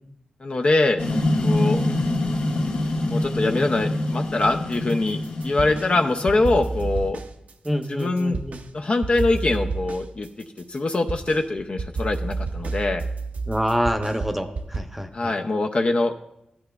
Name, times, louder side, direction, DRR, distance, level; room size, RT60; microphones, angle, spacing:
voice 1, 0.4-1.0 1.4-1.8 3.1-7.2 7.9-8.4 8.7-10.3 10.7-13.0 15.1-16.1, left 2 dB, 45° left, 4 dB, 0.5 m, -23 dB
sound 1, 1.0-7.0, left 1 dB, 75° left, 1.4 m, -25 dB
sound 2, 4.4-5.9 6.3-8.7 9.0-14.8, right 3 dB, 65° right, 0.6 m, -30 dB
voice 2, 7.6-8.6 13.5-15.3, equal, 5° right, 5 dB, 0.7 m, -26 dB
13.0 x 8.9 x 2.3 m, 0.84 s
wide cardioid pair, 95°, 3 cm